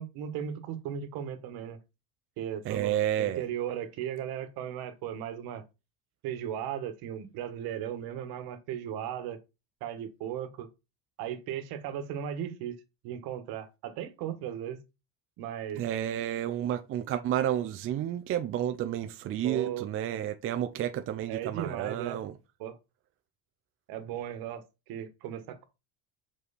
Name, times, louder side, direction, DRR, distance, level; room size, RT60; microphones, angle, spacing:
voice 1, 0.0-1.8 2.4-5.6 6.2-9.4 9.8-10.7 11.2-12.8 13.0-14.8 15.4-15.8 19.4-19.9 21.3-22.3 22.6-22.8 23.9-24.6 24.9-25.6, right 10 dB, 70° right, 1.5 m, -36 dB
voice 2, 2.6-3.4 15.8-22.3, right 11 dB, 35° right, 0.5 m, -31 dB
6.2 x 5.5 x 4.1 m
cardioid pair, 180°, 39 cm